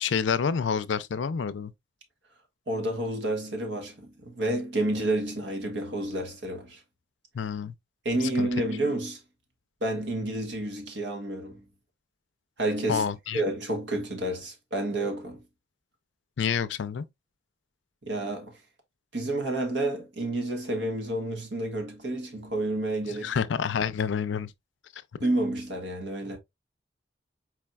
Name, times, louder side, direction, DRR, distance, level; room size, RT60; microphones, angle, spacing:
voice 1, 0.0-1.7 7.3-7.7 8.4-8.5 12.9-13.4 16.4-17.1 23.1-24.5, left 6 dB, 80° left, 0.5 m, -28 dB
voice 2, 2.7-6.8 8.0-9.2 9.8-11.6 12.6-15.4 18.0-18.6 19.1-23.3 25.2-26.4, right 1 dB, 75° right, 1.5 m, -30 dB
4.7 x 4.2 x 2.2 m
head